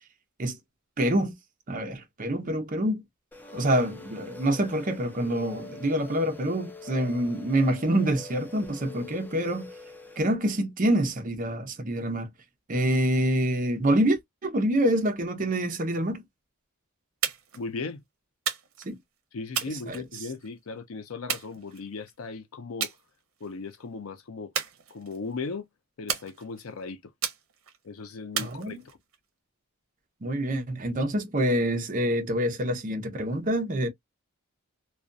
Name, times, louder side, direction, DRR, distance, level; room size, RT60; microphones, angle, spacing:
voice 1, 1.0-1.3 1.7-3.0 3.5-9.7 10.2-12.3 12.7-16.2 18.8-19.0 19.9-20.0 28.4-28.8 30.2-33.9, right 1 dB, 40° right, 0.6 m, -26 dB
sound 1, 3.3-10.2, left 3 dB, 10° left, 0.4 m, -44 dB
sound 2, 17.2-17.6 18.5-18.9 19.5-20.5 21.3-22.1 22.8-23.0 23.4-23.8 24.5-25.3 26.1-26.7 27.2-27.8 28.4-29.2, right 8 dB, 70° right, 0.7 m, -33 dB
voice 2, 17.6-18.0 19.3-22.9 23.4-24.5 24.9-25.7 26.0-27.1 27.8-28.9, left 4 dB, 75° left, 0.5 m, -37 dB
2.3 x 2.2 x 2.5 m
head